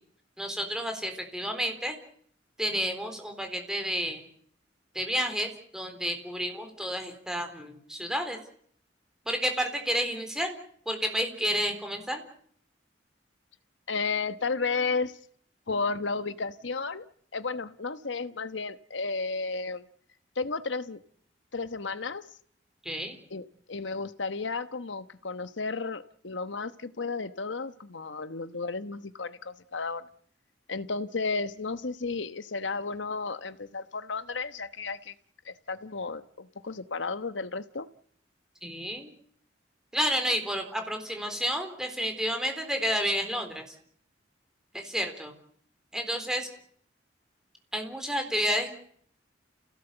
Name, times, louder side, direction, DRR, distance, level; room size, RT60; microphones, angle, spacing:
voice 1, 0.4-1.9 2.6-4.2 4.9-8.4 9.3-10.5 10.9-12.2 22.8-23.2 38.6-39.1 39.9-43.6 44.7-45.3 45.9-46.5 47.7-48.7, equal, 5° right, 5 dB, 3.9 m, -30 dB
voice 2, 13.9-15.2 15.7-17.0 17.3-19.9 20.4-21.0 21.5-22.2 23.3-30.1 30.7-35.1 35.4-37.9, left 4 dB, 85° left, 13 dB, 1.2 m, -33 dB
29.0 x 17.0 x 8.1 m, 0.63 s
head